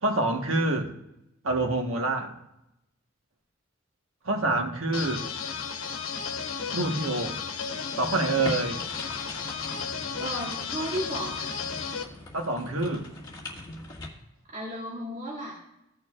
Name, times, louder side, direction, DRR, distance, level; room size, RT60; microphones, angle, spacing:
voice 1, 0.0-0.9 1.4-2.3 4.2-5.2 6.7-7.4 8.0-8.8 12.3-13.0, right 2 dB, 80° right, 3 dB, 1.4 m, -26 dB
sound 1, 4.9-12.0, left 6 dB, 90° left, 0.9 m, -34 dB
sound 2, 8.4-14.1, left 2 dB, 20° left, 1.8 m, -41 dB
voice 2, 10.2-11.6 14.5-15.6, right 1 dB, 35° right, -4 dB, 1.7 m, -34 dB
16.0 x 6.4 x 2.5 m, 0.87 s
head